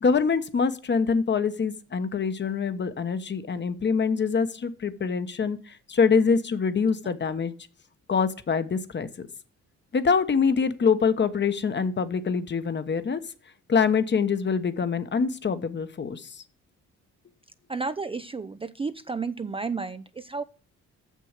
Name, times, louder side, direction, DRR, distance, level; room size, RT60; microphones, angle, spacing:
voice 1, 0.0-7.5 8.1-9.3 9.9-13.2 13.7-16.4, left 5 dB, 35° left, 11 dB, 1.1 m, -25 dB
voice 2, 17.7-20.4, right 4 dB, 20° right, 11 dB, 0.4 m, -32 dB
6.9 x 6.4 x 6.5 m, 0.38 s
cardioid pair, 90°, 30 cm